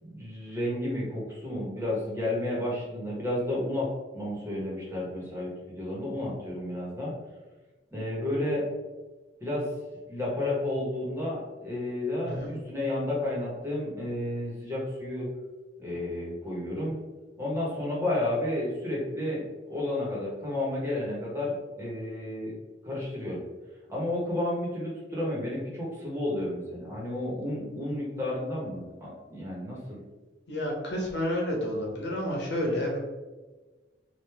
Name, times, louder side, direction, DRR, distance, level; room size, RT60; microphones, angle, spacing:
voice 1, 0.0-3.9 4.1-7.1 7.9-8.6 9.4-9.7 10.1-15.3 15.8-17.0 17.4-22.5 22.8-23.4 23.9-30.0, left 1 dB, 15° right, -5 dB, 1.3 m, -31 dB
voice 2, 12.2-12.6 30.5-33.0, left 1 dB, 70° left, -1 dB, 1.2 m, -30 dB
5.1 x 2.6 x 3.5 m, 1.2 s
head